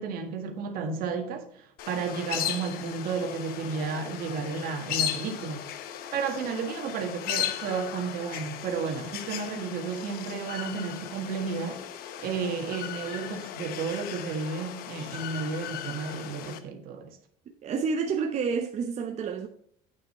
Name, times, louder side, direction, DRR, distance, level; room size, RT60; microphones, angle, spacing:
voice 1, 0.0-5.7 6.1-11.8 12.2-17.2, right 5 dB, 70° right, 1.7 m, -32 dB
sound 1, 1.8-16.6, left 10 dB, 70° left, 1.0 m, -36 dB
voice 2, 17.6-19.5, right 5 dB, 45° right, 0.8 m, -29 dB
8.6 x 7.4 x 4.2 m
cardioid pair, 115°, 16 cm